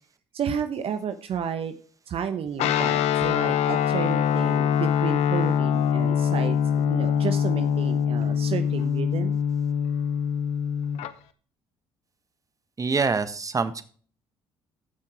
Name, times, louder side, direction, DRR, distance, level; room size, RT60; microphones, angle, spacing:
voice 1, 0.3-1.7 2.1-9.4, right 7 dB, 55° right, 9 dB, 1.0 m, -32 dB
Guitar, 2.6-11.1, left 8 dB, 65° left, 0.9 m, -24 dB
voice 2, 12.8-13.8, right 4 dB, 30° right, 12 dB, 1.3 m, -25 dB
15.0 x 5.9 x 4.4 m, 0.44 s
hypercardioid pair, 60°, 12 cm